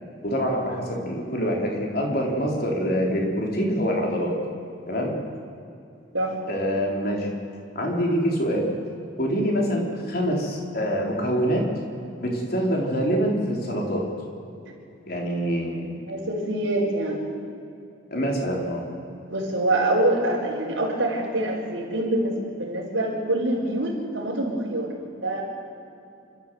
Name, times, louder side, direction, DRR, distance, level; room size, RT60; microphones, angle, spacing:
voice 1, 0.2-4.3 4.9-5.1 6.5-7.3 7.8-8.7 9.2-11.6 12.2-14.0 15.1-15.9 18.1-18.8, equal, 50° left, 0 dB, 3.9 m, -25 dB
voice 2, 16.1-17.4 19.3-24.9 25.2-25.4, right 1 dB, 85° right, -7 dB, 4.3 m, -25 dB
28.5 x 13.0 x 7.7 m, 2.7 s
head